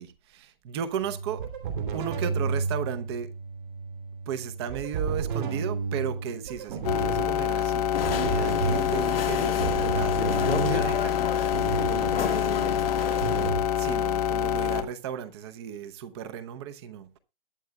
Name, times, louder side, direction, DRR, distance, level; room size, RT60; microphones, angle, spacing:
voice 1, 0.0-1.4 1.9-3.3 4.3-11.2 12.1-12.9 13.8-17.2, right 8 dB, 25° right, 0.8 m, -35 dB
sound 1, 1.0-13.6, right 5 dB, 55° right, 3.1 m, -32 dB
sound 2, 6.8-14.8, left 9 dB, 40° left, 0.7 m, -26 dB
sound 3, 7.9-13.5, left 7 dB, 75° left, 1.1 m, -33 dB
21.5 x 7.7 x 2.3 m
hypercardioid pair, 150°, 30 cm